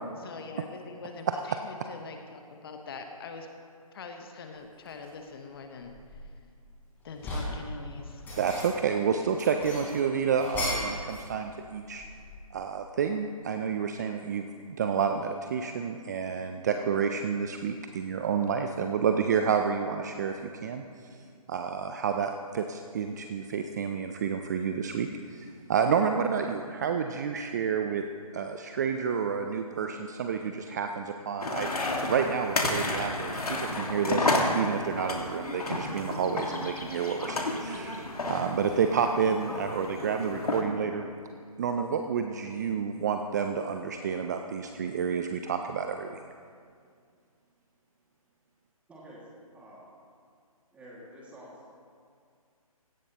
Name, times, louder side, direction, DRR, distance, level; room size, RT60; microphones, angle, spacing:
voice 1, 0.2-3.5 3.9-6.3 7.0-8.3, left 4 dB, 40° left, 4 dB, 1.1 m, -43 dB
sound 1, 4.9-5.1 5.6-6.6 7.0-7.6 8.1-8.9 9.3-11.3 11.5-12.6, left 1 dB, 10° left, 3.9 m, -36 dB
voice 2, 8.4-12.0 12.5-20.8 21.5-28.0 28.3-41.0 41.6-46.2, right 6 dB, 30° right, 6 dB, 0.4 m, -29 dB
sound 2, 31.4-40.6, left 2 dB, 80° left, 1.9 m, -31 dB
voice 3, 48.9-49.2 49.5-49.9 50.7-51.6, equal, 5° right, -4 dB, 2.1 m, -48 dB
16.5 x 14.0 x 3.0 m, 2.2 s
figure-of-eight pair, 145°, 19 cm